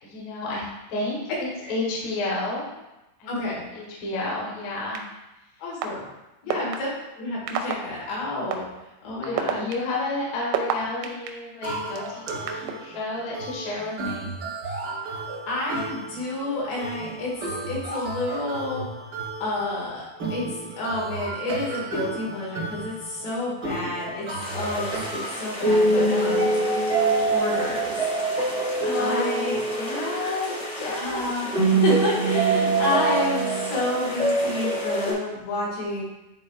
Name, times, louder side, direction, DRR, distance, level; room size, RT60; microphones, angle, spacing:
voice 1, 0.0-0.6 0.9-2.7 3.2-3.3 3.7-5.0 6.4-6.6 9.2-14.3 28.8-31.3, left 2 dB, 65° left, -4 dB, 2.6 m, -31 dB
voice 2, 3.3-3.6 5.6-6.1 6.4-6.9 7.2-8.6 9.0-9.6 15.0-15.2 15.5-17.3 17.6-18.9 19.4-20.4 20.8-24.3 24.5-26.5 27.1-28.0 29.0-29.6 31.0-36.0, left 2 dB, 80° left, -5 dB, 3.9 m, -29 dB
sound 1, 4.9-5.0 5.8-5.9 6.5-6.8 7.5-7.7 8.5-8.6 9.2-11.3 12.0-12.7, right 13 dB, 85° right, 2.2 m, -26 dB
sound 2, 11.6-25.3, right 2 dB, 55° right, 1.1 m, -34 dB
sound 3, 24.4-35.1, right 2 dB, 25° left, 0.7 m, -24 dB
10.0 x 4.0 x 2.3 m, 0.99 s
omnidirectional pair, 4.8 m